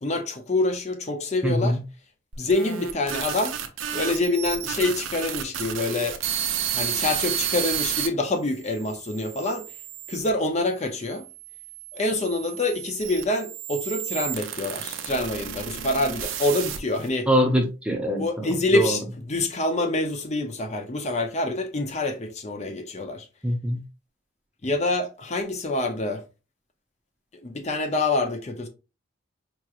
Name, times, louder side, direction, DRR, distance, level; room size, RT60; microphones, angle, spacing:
voice 1, 0.0-1.8 2.4-3.6 3.9-6.2 6.7-9.7 10.1-11.3 11.9-17.3 18.2-23.3 24.6-26.2 27.3-28.7, left 2 dB, 35° left, 0.6 m, -26 dB
voice 2, 1.4-1.8 17.3-19.0 23.4-23.8, equal, 5° right, 0.6 m, -24 dB
sound 1, 2.3-8.1 8.7-10.3 11.1-17.1, right 9 dB, 80° right, 0.6 m, -32 dB
4.8 x 3.0 x 2.4 m
head